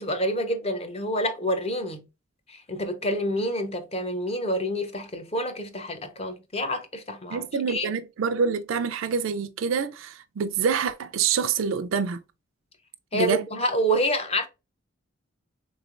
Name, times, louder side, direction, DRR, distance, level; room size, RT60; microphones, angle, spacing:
voice 1, 0.0-2.1 2.5-7.9 13.1-14.5, equal, 30° left, 0.6 m, -28 dB
voice 2, 7.3-12.2 13.1-13.5, right 6 dB, 85° right, 0.4 m, -26 dB
3.6 x 3.1 x 2.4 m
head